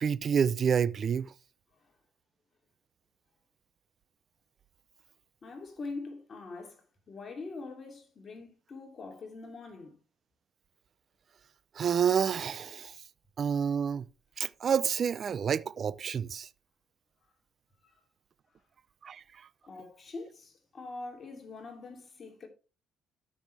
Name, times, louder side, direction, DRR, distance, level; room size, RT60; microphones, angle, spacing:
voice 1, 0.0-1.3 11.7-13.0 13.4-14.0 14.4-16.5 19.0-19.5, right 7 dB, 50° right, 0.5 m, -29 dB
voice 2, 5.4-10.0 17.8-18.0 19.6-22.5, left 3 dB, 40° left, 2.8 m, -43 dB
13.0 x 6.4 x 3.4 m
supercardioid pair, 70°, 0 cm